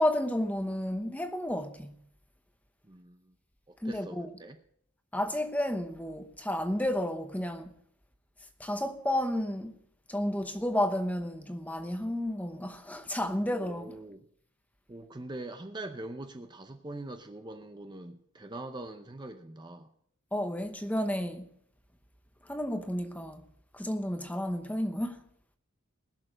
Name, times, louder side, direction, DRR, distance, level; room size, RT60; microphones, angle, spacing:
voice 1, 0.0-2.0 3.8-4.3 5.1-7.7 8.6-9.7 10.1-14.0 20.3-21.5 22.4-23.4 23.7-25.2, left 1 dB, 5° left, 0.9 m, -31 dB
voice 2, 2.8-3.3 3.7-4.6 13.5-14.2 14.9-19.9, right 2 dB, 20° right, 0.6 m, -43 dB
20.5 x 6.8 x 5.0 m
head